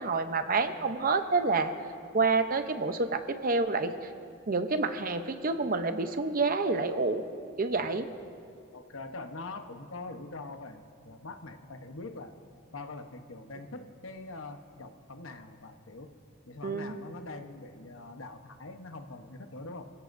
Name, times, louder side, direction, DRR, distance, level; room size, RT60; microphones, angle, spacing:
voice 1, 0.0-1.7 2.1-3.9 4.5-7.2 7.6-8.1 16.6-16.9, right 3 dB, 45° right, 8 dB, 0.8 m, -28 dB
voice 2, 8.7-12.3 12.7-16.1 16.5-19.8, left 2 dB, 80° left, 6 dB, 1.0 m, -43 dB
28.5 x 16.5 x 2.7 m, 2.4 s
head